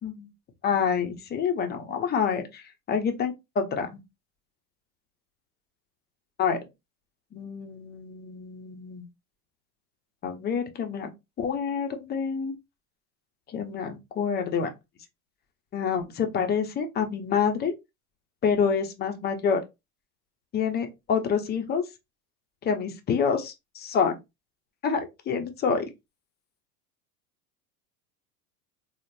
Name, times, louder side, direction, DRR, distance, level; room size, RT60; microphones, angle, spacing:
voice 1, 0.6-4.0 6.4-6.6 7.3-9.1 10.2-11.1 11.4-12.5 13.5-14.7 15.7-17.7 18.4-19.6 20.5-21.8 22.6-24.2 24.8-25.8, left 6 dB, 20° left, 0.5 m, -27 dB
3.0 x 2.0 x 2.5 m
hypercardioid pair, 95°, 48 cm